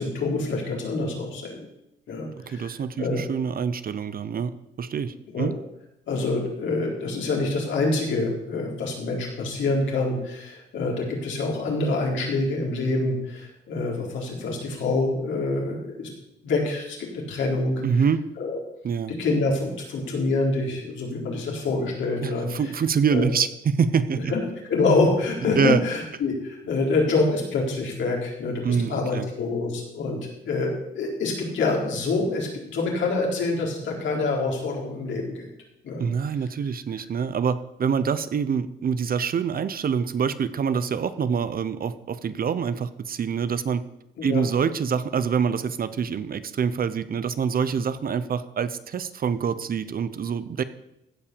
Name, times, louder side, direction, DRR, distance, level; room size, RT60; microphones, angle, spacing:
voice 1, 0.0-1.7 2.1-3.2 5.3-5.5 6.1-16.1 16.4-17.8 18.4-18.6 19.2-22.5 23.1-23.3 24.1-24.4 24.7-30.2 30.5-35.5 35.8-36.0 44.2-44.4, left 3 dB, 70° left, -1 dB, 4.0 m, -26 dB
voice 2, 2.5-4.5 4.8-5.5 17.8-18.2 18.8-19.1 22.2-24.3 25.5-25.8 28.6-29.3 36.0-43.8 44.2-50.6, right 6 dB, 45° right, 13 dB, 0.9 m, -25 dB
15.5 x 5.7 x 6.9 m, 0.85 s
cardioid pair, 90°, 20 cm